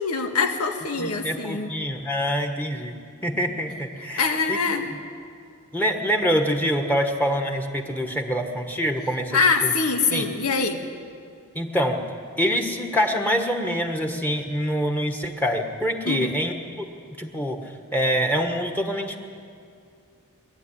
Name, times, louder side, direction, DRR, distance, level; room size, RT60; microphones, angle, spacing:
voice 1, 0.0-1.7 4.2-4.9 9.3-10.8 16.1-16.4, left 4 dB, 90° left, 4 dB, 2.0 m, -24 dB
voice 2, 1.0-4.6 5.7-9.7 10.1-10.2 11.5-12.0 12.4-16.8 17.2-17.6 17.9-19.2, equal, 10° left, 3 dB, 1.4 m, -25 dB
22.0 x 13.5 x 9.9 m, 2.4 s
head